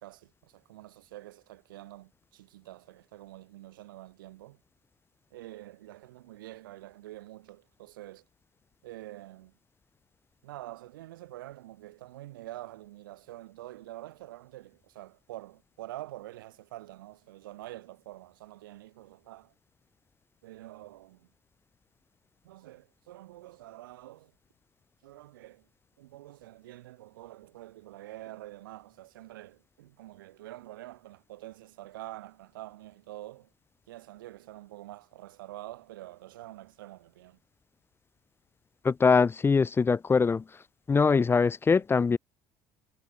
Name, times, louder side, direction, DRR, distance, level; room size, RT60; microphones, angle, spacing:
voice 1, 0.0-4.6 5.3-8.2 8.8-9.5 10.4-19.5 20.4-21.3 22.4-24.3 25.0-25.7 26.0-33.5 33.9-37.4, right 16 dB, 75° right, 0.8 m, -46 dB
voice 2, 38.8-40.4 40.9-42.2, left 5 dB, 20° left, 0.5 m, -23 dB
figure-of-eight pair, 60°, 11 cm